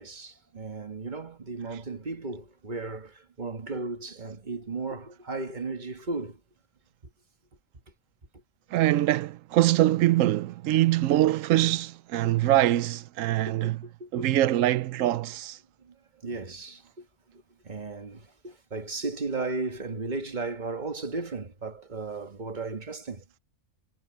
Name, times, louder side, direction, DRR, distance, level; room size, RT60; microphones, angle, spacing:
voice 1, 0.0-6.4 13.6-14.3 15.8-16.0 16.2-17.1 17.3-23.3, right 3 dB, 35° right, 1.8 m, -35 dB
voice 2, 8.7-13.8 14.1-15.6, right 14 dB, 90° right, 1.0 m, -23 dB
omnidirectional pair, 1.3 m